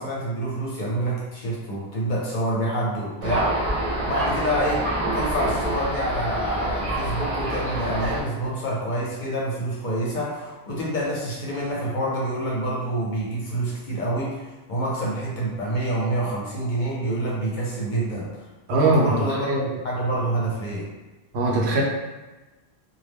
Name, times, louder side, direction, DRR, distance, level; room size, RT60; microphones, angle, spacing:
voice 1, 0.0-3.6 4.1-4.9 5.1-18.3 18.7-20.9, right 1 dB, 55° left, -5 dB, 0.7 m, -27 dB
Thunder, 3.2-8.2, right 1 dB, 40° right, 0.6 m, -26 dB
voice 2, 18.7-19.1 19.4-19.6 21.3-21.8, right 2 dB, 75° right, -2 dB, 0.8 m, -20 dB
2.3 x 2.0 x 3.3 m, 1.1 s
omnidirectional pair, 1.1 m